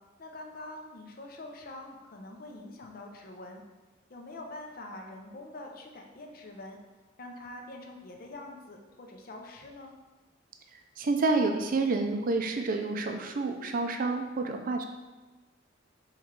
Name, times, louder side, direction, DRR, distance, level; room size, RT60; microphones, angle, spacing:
voice 1, 0.2-3.6 4.1-6.8 7.2-9.9, left 2 dB, 50° left, 2 dB, 0.6 m, -45 dB
voice 2, 11.0-14.8, right 3 dB, 45° right, 4 dB, 0.4 m, -28 dB
4.4 x 3.1 x 3.6 m, 1.2 s
head